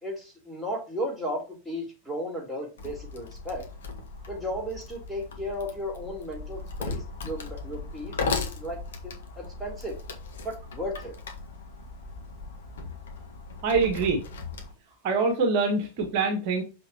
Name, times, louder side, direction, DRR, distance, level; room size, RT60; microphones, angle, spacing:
voice 1, 0.0-3.6 4.3-10.0 10.4-11.1, equal, ahead, 3.7 m, -35 dB
Wood, 2.8-14.7, left 4 dB, 60° left, 1.6 m, -37 dB
voice 2, 13.6-14.2 15.0-16.6, right 4 dB, 45° right, 1.8 m, -24 dB
6.7 x 5.8 x 2.9 m
figure-of-eight pair, 90°, 0 cm